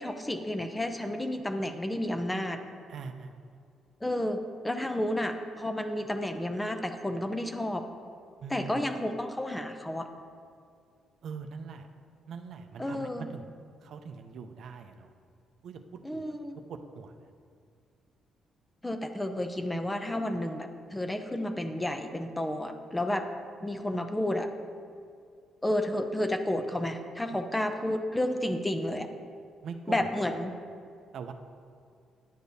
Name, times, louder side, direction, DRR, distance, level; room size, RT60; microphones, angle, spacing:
voice 1, 0.0-2.6 4.0-4.4 4.6-7.8 8.5-10.1 12.8-13.3 16.0-16.6 18.8-23.3 23.6-24.5 25.6-29.1 29.9-30.5, left 1 dB, 10° left, 7 dB, 0.5 m, -31 dB
voice 2, 2.9-3.3 8.4-8.8 11.2-11.9 12.3-13.5 13.8-15.1 15.6-16.2 16.7-17.3 27.3-27.4 29.6-30.1 31.1-31.3, right 5 dB, 70° right, 6 dB, 0.5 m, -42 dB
10.0 x 6.6 x 2.7 m, 2.2 s
cardioid pair, 90°, 0 cm